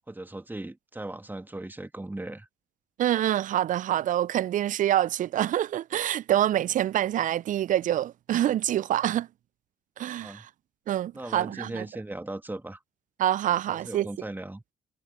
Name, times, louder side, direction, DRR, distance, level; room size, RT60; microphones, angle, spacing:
voice 1, 0.1-2.5 10.2-10.5 11.1-12.8 13.5-14.6, right 2 dB, 10° right, 2.0 m, -38 dB
voice 2, 3.0-9.3 10.0-10.5 10.9-11.8 13.2-14.1, right 12 dB, 50° right, 0.5 m, -26 dB
figure-of-eight pair, 40°, 17 cm